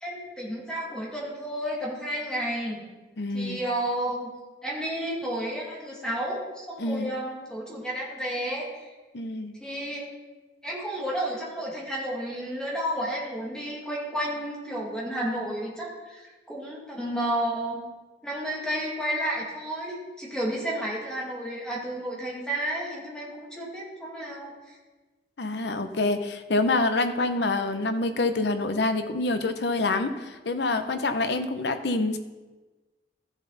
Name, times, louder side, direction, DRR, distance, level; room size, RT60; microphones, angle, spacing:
voice 1, 0.0-2.8 3.3-4.3 4.6-8.8 9.6-10.1 10.6-17.8 18.2-24.8, right 1 dB, 5° left, -4 dB, 2.3 m, -31 dB
voice 2, 3.2-3.6 6.8-7.1 9.1-9.5 25.4-32.2, left 2 dB, 70° left, 8 dB, 0.8 m, -26 dB
13.5 x 7.1 x 4.0 m, 1.2 s
head